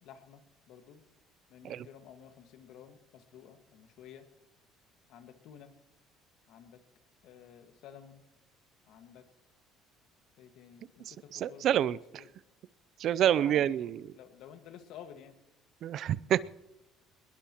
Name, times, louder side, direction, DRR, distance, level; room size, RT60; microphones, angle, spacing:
voice 1, 0.0-1.0 1.5-4.3 5.1-5.7 6.5-6.8 7.2-8.2 8.9-9.3 10.4-12.3 13.2-15.4, left 9 dB, 75° left, 7 dB, 1.7 m, -52 dB
voice 2, 11.1-12.0 13.0-14.0 15.8-16.4, right 10 dB, 55° right, 18 dB, 0.4 m, -28 dB
21.0 x 20.5 x 3.0 m, 0.91 s
cardioid pair, 115°, 0 cm